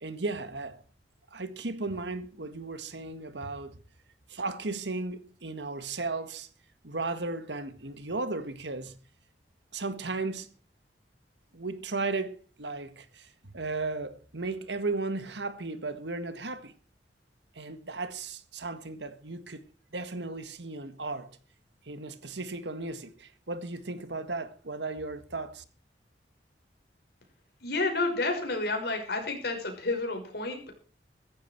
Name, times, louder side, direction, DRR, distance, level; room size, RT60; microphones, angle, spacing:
voice 1, 0.0-0.8 1.3-3.8 4.3-6.5 6.8-9.0 9.7-10.5 11.5-16.7 17.6-19.6 19.9-21.3 21.9-25.6, right 3 dB, 80° right, 1.7 m, -35 dB
voice 2, 27.6-30.7, left 3 dB, 65° left, 5.9 m, -30 dB
16.0 x 14.5 x 4.6 m
head